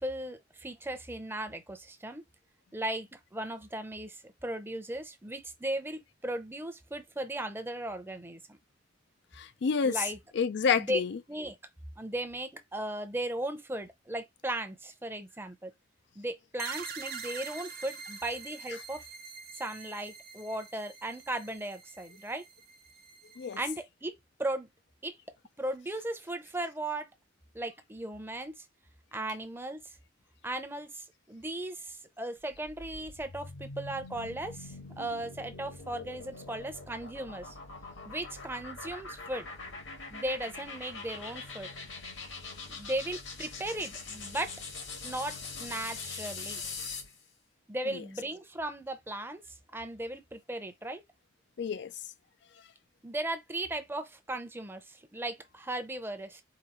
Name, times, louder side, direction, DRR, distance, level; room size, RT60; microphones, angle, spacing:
voice 1, 0.0-2.2 2.7-8.6 9.8-10.2 10.8-11.0 11.3-11.6 12.0-15.7 16.2-19.0 19.6-22.4 23.6-24.1 24.4-24.7 25.0-25.1 25.6-27.1 27.5-28.6 29.1-29.9 30.4-37.6 38.0-39.5 40.1-41.7 42.7-44.5 45.0-46.6 47.7-49.4 49.7-51.0 53.0-56.4, right 1 dB, 10° right, 0.7 m, -37 dB
voice 2, 9.3-10.0 10.3-11.2 23.4-23.6 47.9-48.0 51.6-51.9, left 6 dB, 60° left, 0.4 m, -29 dB
sound 1, 16.6-23.8, right 5 dB, 50° right, 0.9 m, -45 dB
sound 2, 32.4-47.2, left 4 dB, 90° left, 1.8 m, -43 dB
5.0 x 2.6 x 3.0 m
head